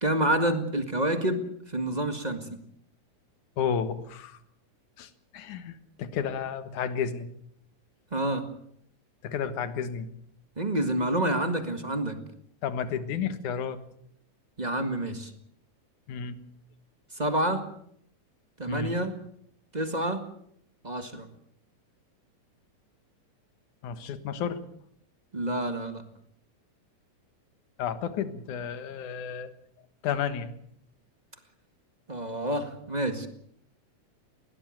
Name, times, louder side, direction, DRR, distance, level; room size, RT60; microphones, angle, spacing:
voice 1, 0.0-2.4 8.1-8.5 10.6-12.2 14.6-15.3 17.1-17.7 18.6-19.2 19.7-20.3 20.8-21.3 25.3-26.0 32.1-33.3, right 1 dB, 20° right, 7 dB, 1.0 m, -28 dB
voice 2, 3.6-4.4 5.0-7.3 9.2-10.1 12.6-13.8 16.1-16.4 18.7-18.9 23.8-24.6 27.8-29.5 30.0-30.5, left 7 dB, 70° left, 11 dB, 2.9 m, -32 dB
21.5 x 18.0 x 7.9 m, 0.66 s
omnidirectional pair, 3.7 m